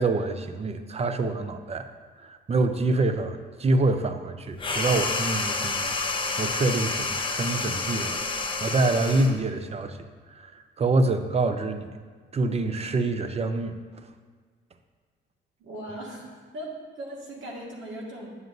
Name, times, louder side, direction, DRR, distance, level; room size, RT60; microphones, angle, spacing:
voice 1, 0.0-1.9 2.2-8.2 8.6-10.0 10.3-12.0 12.3-13.8, right 2 dB, 30° right, 9 dB, 0.6 m, -26 dB
sound 1, 4.6-9.4, left 3 dB, 25° left, 0.8 m, -29 dB
voice 2, 15.6-16.3 16.5-18.4, right 1 dB, 80° right, -3 dB, 1.9 m, -38 dB
9.4 x 7.6 x 2.6 m, 1.5 s
cardioid pair, 90°, 20 cm